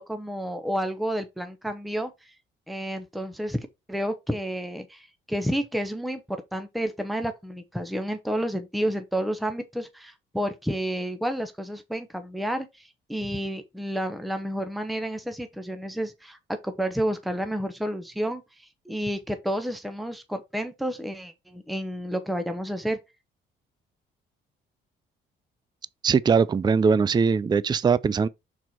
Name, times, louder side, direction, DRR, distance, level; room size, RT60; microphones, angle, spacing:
voice 1, 0.0-2.3 2.7-3.6 3.9-16.4 16.6-23.0, equal, ahead, 1.0 m, -30 dB
voice 2, 26.0-28.3, right 5 dB, 20° right, 0.4 m, -21 dB
6.1 x 4.4 x 4.3 m
cardioid pair, 90°, 20 cm